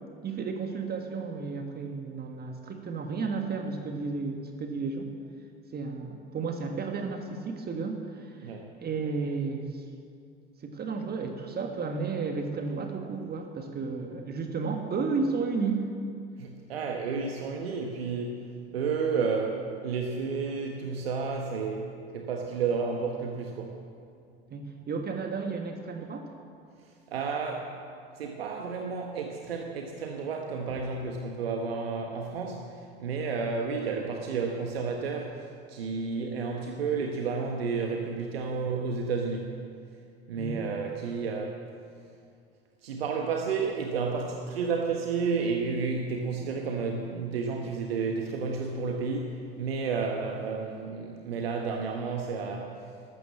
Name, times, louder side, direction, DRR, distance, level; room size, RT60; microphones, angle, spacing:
voice 1, 0.2-5.1 5.7-9.8 10.6-15.9 24.5-26.3 40.4-40.7, right 4 dB, 30° right, 4 dB, 1.6 m, -33 dB
voice 2, 16.4-18.4 18.7-23.8 27.1-27.7 28.2-35.4 35.7-39.5 40.3-41.6 42.8-52.7, right 5 dB, 75° right, 2 dB, 1.4 m, -31 dB
13.5 x 12.5 x 7.4 m, 2.3 s
figure-of-eight pair, 70°, 30 cm